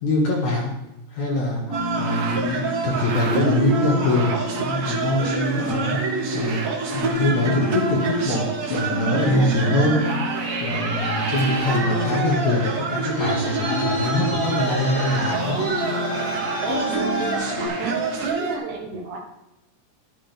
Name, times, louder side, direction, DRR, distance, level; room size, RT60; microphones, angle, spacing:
voice 1, 0.0-0.8 1.1-6.6 6.9-10.0 10.6-15.7, left 1 dB, 70° left, -3 dB, 3.0 m, -23 dB
sound 1, 1.7-17.7, left 1 dB, 25° left, 1.6 m, -31 dB
sound 2, 1.7-18.6, right 4 dB, 65° right, 2.6 m, -27 dB
Traffic noise roadway noise, 10.6-18.3, left 1 dB, 50° left, 0.6 m, -32 dB
voice 2, 16.7-19.2, right 3 dB, 85° right, -1 dB, 2.6 m, -32 dB
11.5 x 10.0 x 3.5 m, 0.93 s
omnidirectional pair, 3.5 m